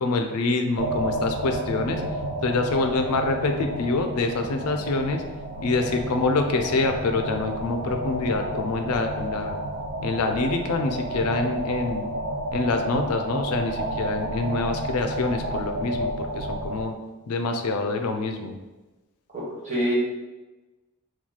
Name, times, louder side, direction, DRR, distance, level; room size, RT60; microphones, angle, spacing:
voice 1, 0.0-2.0 2.4-5.2 5.6-9.6 10.0-12.1 12.5-16.9 17.3-18.5, left 3 dB, 85° left, 5 dB, 0.4 m, -26 dB
sound 1, 0.8-16.8, right 1 dB, 50° right, 0.3 m, -31 dB
voice 2, 19.3-20.0, equal, 35° right, -7 dB, 1.3 m, -26 dB
3.0 x 2.3 x 3.9 m, 1.1 s
head